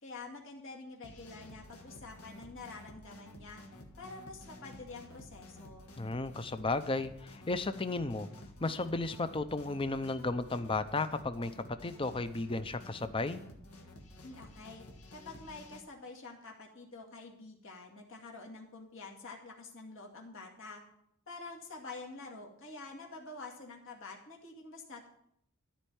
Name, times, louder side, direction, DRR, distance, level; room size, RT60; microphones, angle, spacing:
voice 1, 0.0-3.6 4.0-5.9 14.2-14.8 15.1-20.8 21.3-25.1, left 3 dB, 60° left, -1 dB, 2.2 m, -47 dB
sound 1, 1.0-15.8, left 1 dB, 80° left, 1.6 m, -52 dB
voice 2, 6.0-8.3 8.6-13.4, left 3 dB, 25° left, 11 dB, 0.6 m, -34 dB
13.5 x 4.5 x 8.6 m, 0.73 s
head